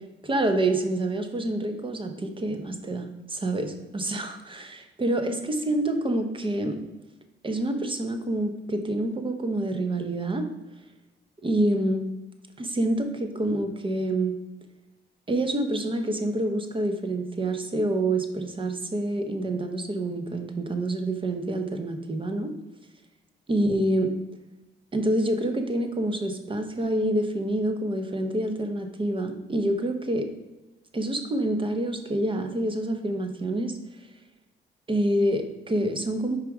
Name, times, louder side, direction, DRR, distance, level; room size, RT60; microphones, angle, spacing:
voice 1, 0.2-6.8 7.4-10.5 11.4-12.0 12.6-14.4 15.3-22.5 23.5-24.1 24.9-30.3 30.9-33.7 34.9-36.4, right 1 dB, 25° right, 7 dB, 1.0 m, -27 dB
5.0 x 4.9 x 4.7 m, 1.0 s
cardioid pair, 90°, 20 cm